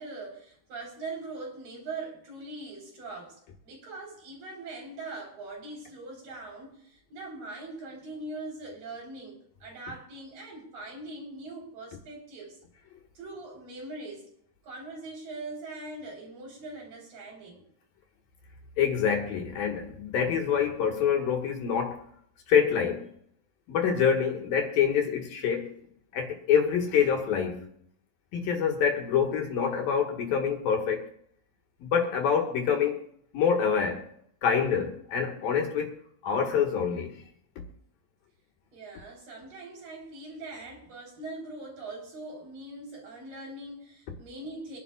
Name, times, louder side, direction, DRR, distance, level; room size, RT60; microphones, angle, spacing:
voice 1, 0.0-12.6 13.2-14.3 14.6-17.6 38.7-44.8, right 2 dB, 60° right, 5.5 m, -41 dB
voice 2, 18.8-22.0 22.5-23.1 23.7-25.7 26.1-27.7 28.3-31.0 31.8-33.0 33.3-34.0 34.4-36.0 36.2-37.1, left 7 dB, 65° left, 3.2 m, -26 dB
25.5 x 11.0 x 2.4 m
omnidirectional pair, 4.5 m